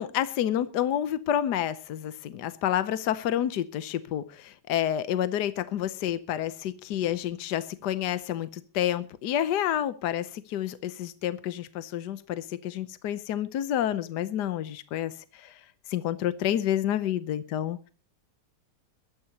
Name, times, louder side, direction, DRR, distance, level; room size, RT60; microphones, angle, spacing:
voice 1, 0.0-15.6 15.9-17.9, left 11 dB, 75° left, 13 dB, 1.4 m, -29 dB
22.5 x 13.0 x 2.9 m, 0.33 s
omnidirectional pair, 1.8 m